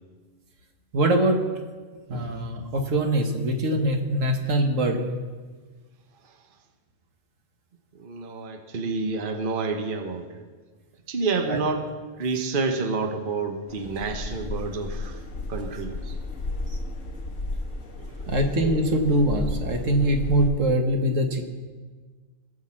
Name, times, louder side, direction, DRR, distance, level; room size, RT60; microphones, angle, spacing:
voice 1, 0.9-1.4 2.1-5.0 11.5-11.6 18.3-21.4, right 1 dB, 75° right, 4 dB, 1.7 m, -23 dB
voice 2, 8.0-10.2 11.1-11.8 12.2-15.1 15.5-16.1 18.2-18.3, right 4 dB, 45° right, 5 dB, 1.1 m, -28 dB
sound 1, 13.7-20.5, left 2 dB, 80° left, 1.8 m, -33 dB
18.5 x 6.4 x 7.5 m, 1.4 s
omnidirectional pair, 1.3 m